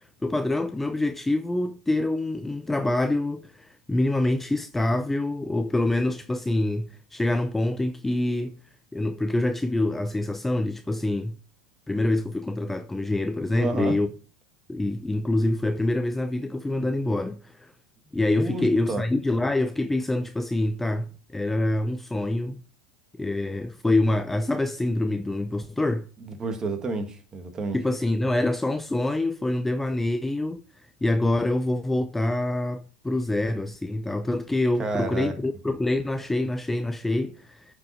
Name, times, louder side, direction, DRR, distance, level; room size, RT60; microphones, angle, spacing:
voice 1, 0.2-8.5 8.9-11.4 11.9-14.1 14.7-17.7 18.1-22.6 23.2-26.1 27.7-30.6 31.0-37.7, left 2 dB, 10° left, 0.5 m, -26 dB
voice 2, 13.6-14.0 18.4-19.0 26.2-27.8 34.8-35.3, right 2 dB, 25° right, 1.7 m, -30 dB
9.1 x 5.1 x 4.3 m
hypercardioid pair, 95°, 2 cm